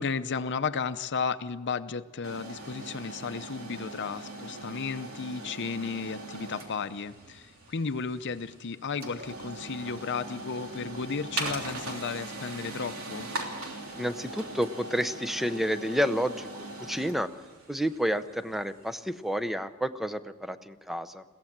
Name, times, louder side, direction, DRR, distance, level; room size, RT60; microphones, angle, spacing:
voice 1, 0.0-13.3, left 5 dB, 55° left, 12 dB, 0.7 m, -34 dB
sound 1, 2.2-19.1, right 2 dB, 75° right, 3.2 m, -40 dB
voice 2, 14.0-17.3 17.7-21.2, equal, ahead, 12 dB, 0.6 m, -30 dB
22.0 x 16.0 x 7.4 m, 1.4 s
head